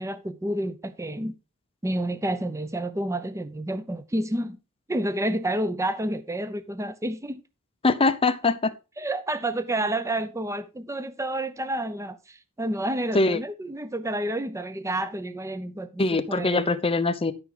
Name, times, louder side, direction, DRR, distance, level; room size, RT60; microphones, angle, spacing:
voice 1, 0.0-1.3 1.8-4.6 4.9-7.4 9.0-16.7, right 1 dB, 15° right, 0.6 m, -29 dB
voice 2, 7.8-8.7 13.1-13.4 16.0-17.3, left 3 dB, 25° left, 0.8 m, -22 dB
12.5 x 6.1 x 3.8 m
head